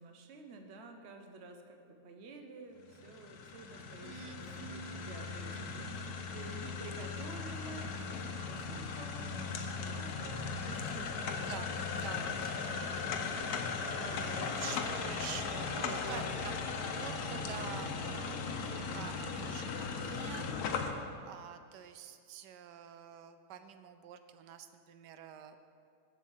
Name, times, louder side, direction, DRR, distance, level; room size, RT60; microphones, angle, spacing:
voice 1, 0.0-11.5 12.0-13.4 15.7-16.6, right 3 dB, 50° right, 4 dB, 1.0 m, -50 dB
sound 1, 2.9-20.9, left 5 dB, 70° left, 1.2 m, -38 dB
voice 2, 4.0-5.1 5.5-6.7 11.5-13.1 13.7-25.6, right 9 dB, 90° right, 9 dB, 1.2 m, -48 dB
7.5 x 7.3 x 7.5 m, 2.3 s
omnidirectional pair, 1.8 m